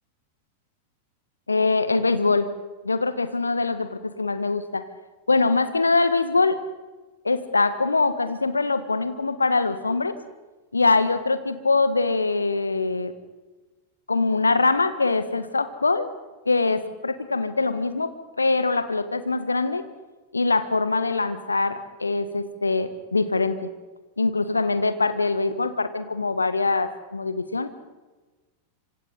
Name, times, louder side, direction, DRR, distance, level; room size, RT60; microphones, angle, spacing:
voice 1, 1.5-2.5 2.8-4.9 5.3-6.6 7.2-10.1 10.7-13.1 14.1-16.1 16.4-18.1 18.4-19.8 20.3-23.6 24.2-27.7, left 3 dB, 80° left, 12 dB, 1.5 m, -23 dB
27.0 x 25.5 x 4.1 m, 1.2 s
figure-of-eight pair, 90°, 0 cm